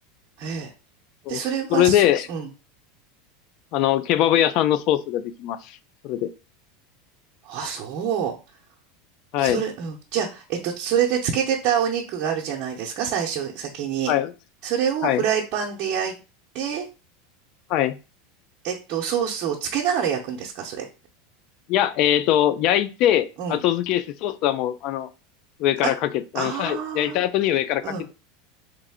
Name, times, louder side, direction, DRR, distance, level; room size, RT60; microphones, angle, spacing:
voice 1, 0.4-0.7 1.3-2.5 7.4-8.4 9.4-14.1 14.6-16.2 16.5-16.9 18.6-20.8 23.4-23.6 26.3-27.2 27.8-28.0, right 8 dB, 50° right, -2 dB, 0.8 m, -26 dB
voice 2, 1.7-2.3 3.7-5.8 6.0-6.3 9.3-9.6 14.1-14.3 15.0-15.2 17.7-18.0 21.7-25.1 25.6-27.8, left 12 dB, 55° left, 14 dB, 0.5 m, -22 dB
3.6 x 3.3 x 3.6 m, 0.31 s
supercardioid pair, 120°, 0 cm